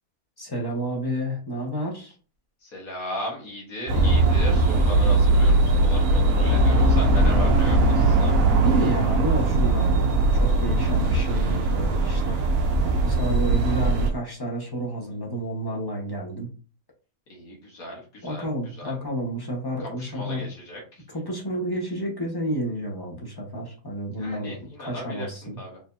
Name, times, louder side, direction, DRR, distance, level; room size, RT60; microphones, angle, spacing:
voice 1, 0.4-2.1 8.6-12.4 12.8-16.5 18.2-20.5 21.1-25.6, right 1 dB, 15° left, -2 dB, 1.2 m, -30 dB
voice 2, 2.6-8.4 17.3-18.5 18.8-18.9 20.0-21.0 24.1-25.3 25.6-25.8, equal, 65° left, -2 dB, 1.7 m, -36 dB
sound 1, 3.9-14.1, right 2 dB, 65° right, 1.1 m, -20 dB
4.7 x 3.2 x 2.7 m, 0.36 s
omnidirectional pair, 1.6 m